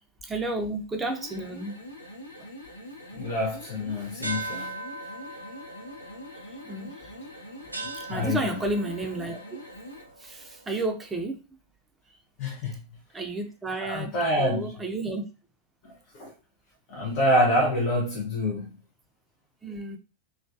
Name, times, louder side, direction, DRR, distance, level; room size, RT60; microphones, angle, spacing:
voice 1, 0.2-1.7 6.5-6.9 7.9-9.4 10.2-11.4 13.1-15.2 19.6-20.0, right 2 dB, 15° right, 0.5 m, -32 dB
sound 1, 0.9-10.1, equal, 90° left, 0.6 m, -44 dB
voice 2, 3.1-4.8 8.1-8.6 12.4-13.0 13.8-14.7 16.2-16.3 16.9-18.8, equal, 45° left, 0.6 m, -26 dB
sound 2, 4.2-11.1, right 2 dB, 85° right, 0.3 m, -40 dB
2.3 x 2.2 x 2.4 m
figure-of-eight pair, 90°, 0 cm